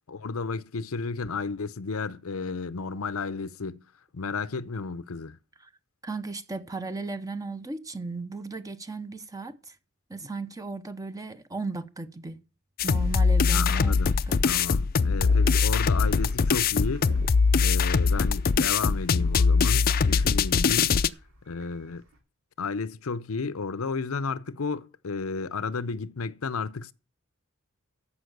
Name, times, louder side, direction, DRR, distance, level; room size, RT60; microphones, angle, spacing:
voice 1, 0.1-3.8 4.1-5.4 13.5-14.1 14.5-17.1 17.6-21.0 21.5-22.0 22.6-26.9, left 4 dB, 85° left, 0.7 m, -32 dB
voice 2, 6.0-9.7 10.1-12.4 12.8-14.6, right 3 dB, 15° right, 0.8 m, -36 dB
sound 1, 12.8-21.1, left 5 dB, 45° left, 0.5 m, -22 dB
sound 2, 15.2-22.2, equal, 85° right, 2.7 m, -47 dB
14.5 x 5.6 x 6.7 m
head